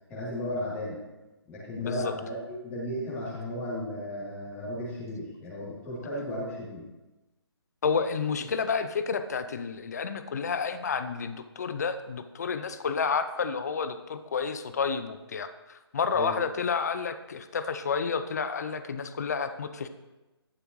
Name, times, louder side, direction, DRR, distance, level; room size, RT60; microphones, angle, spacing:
voice 1, 0.1-1.0 1.5-6.8 16.1-16.4, left 1 dB, 10° left, -9 dB, 3.1 m, -35 dB
voice 2, 1.7-2.1 7.8-19.9, left 5 dB, 40° left, 11 dB, 0.8 m, -30 dB
13.0 x 11.5 x 3.1 m, 1.1 s
figure-of-eight pair, 145°, 14 cm